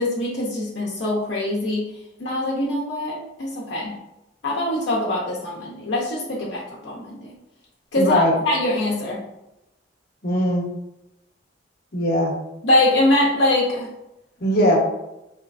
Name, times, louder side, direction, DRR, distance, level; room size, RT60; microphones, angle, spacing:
voice 1, 0.0-1.9 2.2-3.9 4.4-7.3 7.9-9.2 12.6-13.9, left 1 dB, 75° left, -5 dB, 0.7 m, -23 dB
voice 2, 8.0-8.3 10.2-10.6 11.9-12.3 14.4-14.8, equal, 55° left, 0 dB, 0.9 m, -19 dB
4.3 x 2.9 x 2.5 m, 0.91 s
head